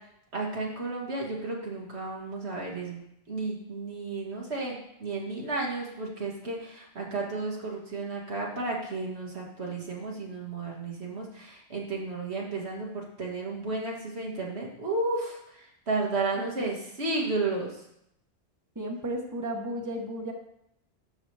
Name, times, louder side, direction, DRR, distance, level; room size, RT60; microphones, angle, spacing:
voice 1, 0.3-3.0 3.3-17.7, right 3 dB, 90° right, -3 dB, 2.3 m, -33 dB
voice 2, 16.3-16.7 18.7-20.3, right 1 dB, 20° right, 1 dB, 1.2 m, -34 dB
12.5 x 7.0 x 3.4 m, 0.78 s
omnidirectional pair, 1.1 m